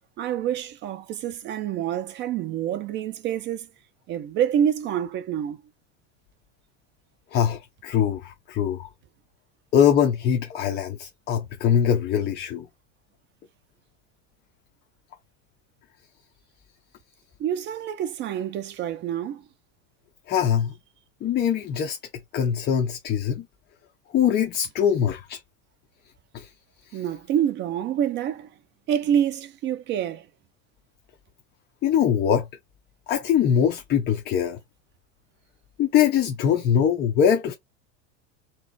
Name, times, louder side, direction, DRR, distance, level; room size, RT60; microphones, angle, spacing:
voice 1, 0.2-3.7 4.1-5.6 17.4-19.5 26.9-28.5 28.9-30.3, right 9 dB, 30° right, 0.5 m, -27 dB
voice 2, 7.3-8.9 9.7-12.7 20.3-20.7 21.2-22.0 22.3-23.5 24.1-25.4 26.3-26.5 26.9-27.0 31.8-32.5 33.1-34.6 35.8-37.5, left 8 dB, 25° left, 0.6 m, -22 dB
3.6 x 3.0 x 4.0 m
supercardioid pair, 150°, 37 cm